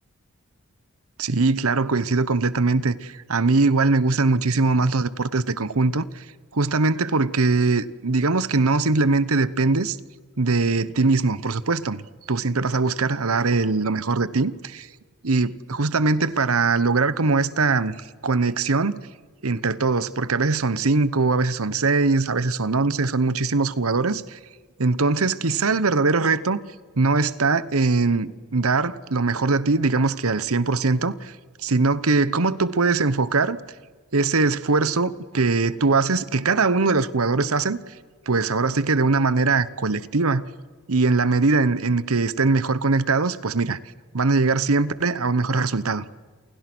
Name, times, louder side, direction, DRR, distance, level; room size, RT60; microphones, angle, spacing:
voice 1, 1.2-6.2 6.5-10.0 10.4-12.0 12.3-14.9 15.2-17.9 18.2-19.0 19.4-24.4 24.8-26.6 27.0-31.3 31.6-33.6 34.1-37.8 38.3-40.4 40.9-43.8 44.1-46.0, right 3 dB, 75° right, 1.0 m, -21 dB
29.0 x 28.5 x 6.2 m
head